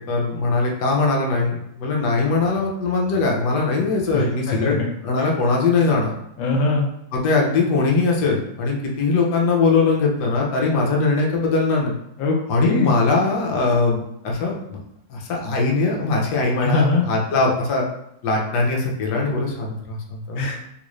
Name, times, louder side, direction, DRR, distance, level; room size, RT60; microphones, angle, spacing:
voice 1, 0.0-4.8 5.0-6.1 7.1-11.9 12.5-14.8 15.1-17.8 18.2-20.4, left 3 dB, 65° left, -1 dB, 1.3 m, -21 dB
voice 2, 4.1-4.9 6.4-6.9 12.2-12.9 16.6-17.0 20.4-20.6, left 3 dB, 85° left, 0 dB, 1.4 m, -22 dB
3.5 x 2.5 x 3.1 m, 0.80 s
omnidirectional pair, 2.0 m